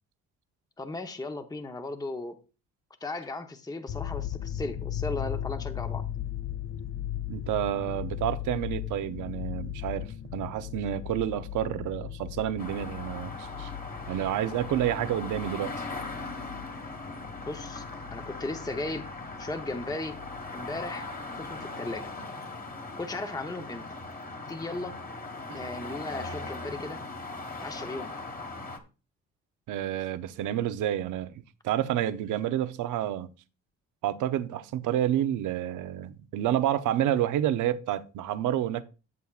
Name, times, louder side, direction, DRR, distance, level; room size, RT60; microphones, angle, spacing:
voice 1, 0.8-2.4 3.0-6.0 17.5-17.8 18.1-19.0 19.4-20.2 20.5-21.1 21.4-22.1 23.0-23.8 24.5-25.0 25.5-27.0 27.6-28.1, left 2 dB, 15° left, 0.9 m, -36 dB
sound 1, 3.9-20.9 21.2-21.5, left 11 dB, 50° left, 0.5 m, -38 dB
voice 2, 7.3-13.7 14.1-15.9 29.7-33.3 34.0-38.8, right 11 dB, 80° right, 0.7 m, -29 dB
sound 2, 12.6-28.8, left 3 dB, 30° left, 1.6 m, -39 dB
13.5 x 7.0 x 2.4 m
cardioid pair, 90°, 30 cm